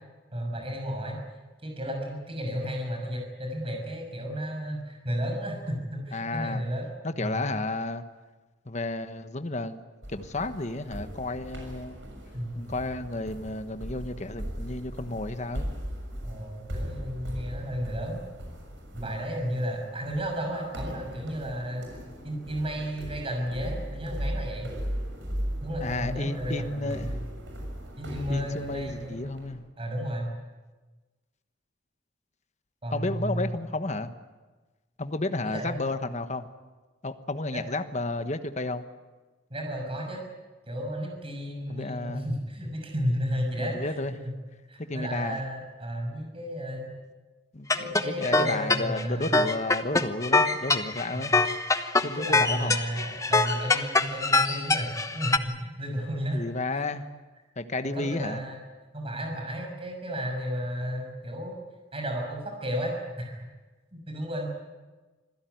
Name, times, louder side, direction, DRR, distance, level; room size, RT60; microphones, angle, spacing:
voice 1, 0.3-1.2 1.6-6.9 7.2-7.5 12.3-12.6 16.2-18.2 18.9-21.8 22.2-24.7 25.6-27.2 28.0-29.1 29.8-30.3 32.8-33.6 35.4-35.9 37.5-37.6 39.5-40.2 40.7-44.4 44.7-47.0 47.7-49.5 51.1-51.4 52.0-54.9 55.1-56.4 56.7-56.9 57.8-58.6 58.9-61.6 61.9-63.5 63.9-64.5, equal, 30° right, 2 dB, 6.3 m, -33 dB
voice 2, 6.1-6.6 7.0-8.0 8.7-9.8 10.1-12.1 12.5-15.7 25.8-27.1 28.3-29.6 32.9-34.1 35.0-36.5 37.0-38.8 41.7-42.3 43.6-44.1 44.8-45.4 47.5-51.3 52.0-52.7 56.3-57.0 57.6-58.4, left 2 dB, 40° left, 9 dB, 1.2 m, -32 dB
sound 1, 10.0-29.5, equal, 70° right, 6.6 m, -38 dB
sound 2, 47.7-55.4, left 3 dB, 15° left, 1.1 m, -24 dB
26.0 x 16.5 x 9.4 m, 1.3 s
head